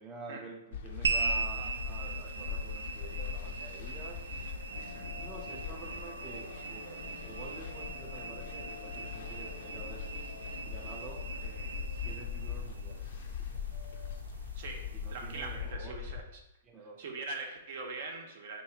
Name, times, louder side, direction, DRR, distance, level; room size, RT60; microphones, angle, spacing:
voice 1, 0.0-4.3 5.2-10.1 10.6-13.6 14.9-16.2 16.6-17.1, right 3 dB, 20° right, 0 dB, 0.5 m, -48 dB
sound 1, 0.7-16.2, left 7 dB, 60° left, 0.5 m, -41 dB
sound 2, 1.0-15.7, right 4 dB, 85° right, 0.4 m, -40 dB
sound 3, 4.7-12.2 12.5-12.6 13.7-14.2, left 5 dB, 90° left, 0.9 m, -50 dB
voice 2, 14.6-16.2 17.0-18.6, right 3 dB, 60° right, 3 dB, 0.7 m, -42 dB
3.0 x 2.8 x 4.5 m, 0.89 s
hypercardioid pair, 135°, 0 cm